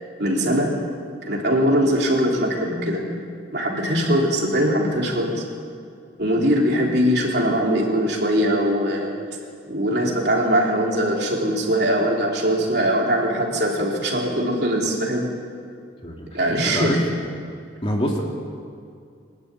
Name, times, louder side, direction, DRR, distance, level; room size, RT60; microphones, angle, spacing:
voice 1, 0.2-0.8 1.2-3.1 3.5-5.4 6.2-9.1 9.6-15.3 16.3-17.0, equal, 55° right, -1 dB, 3.6 m, -21 dB
voice 2, 17.8-18.2, equal, 30° left, 0 dB, 2.3 m, -24 dB
23.5 x 12.5 x 9.6 m, 2.3 s
head